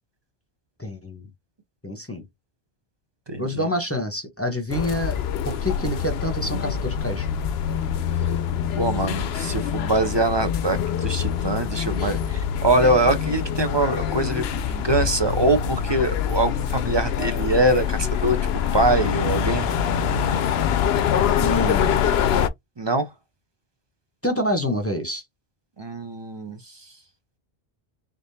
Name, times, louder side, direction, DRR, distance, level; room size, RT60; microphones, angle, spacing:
voice 1, 0.8-1.2 1.8-2.2 3.4-5.2 5.4-7.3 12.0-12.1 21.4-22.1 24.2-25.2, left 1 dB, 15° left, 0.9 m, -27 dB
voice 2, 3.3-3.6 8.8-18.4 18.7-19.7 22.8-23.1 25.8-26.6, right 2 dB, 30° right, 0.6 m, -23 dB
sound 1, 4.7-22.5, left 8 dB, 75° left, 0.8 m, -25 dB
3.9 x 3.7 x 2.7 m
omnidirectional pair, 1.1 m